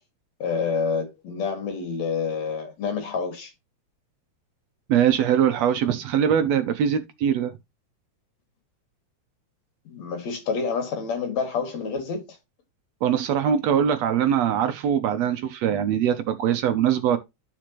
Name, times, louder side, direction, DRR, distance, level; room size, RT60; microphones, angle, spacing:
voice 1, 0.4-3.5 9.8-12.2, left 5 dB, 65° left, 3.2 m, -28 dB
voice 2, 4.9-7.6 13.0-17.2, right 9 dB, 70° right, 1.8 m, -22 dB
12.0 x 5.0 x 3.0 m
omnidirectional pair, 3.4 m